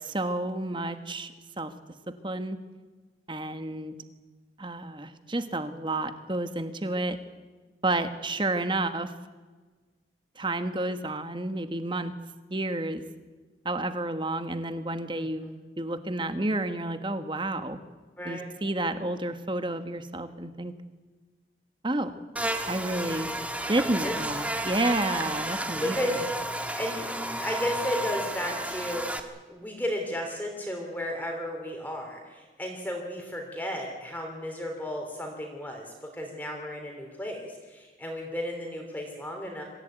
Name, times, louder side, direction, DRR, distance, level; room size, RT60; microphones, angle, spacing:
voice 1, 0.1-1.7 2.1-2.6 3.3-4.0 4.6-7.2 7.8-9.1 10.4-12.1 12.5-13.0 13.6-17.8 18.2-20.7 21.8-22.1 22.7-23.3 23.7-26.0, right 2 dB, 30° right, 9 dB, 1.4 m, -30 dB
voice 2, 15.1-15.5 18.2-18.5 24.0-24.5 25.7-26.4 26.7-39.6, equal, 10° left, 1 dB, 3.4 m, -34 dB
Buzz, 22.4-29.2, right 1 dB, 10° right, 1.5 m, -32 dB
25.0 x 15.5 x 9.3 m, 1.3 s
head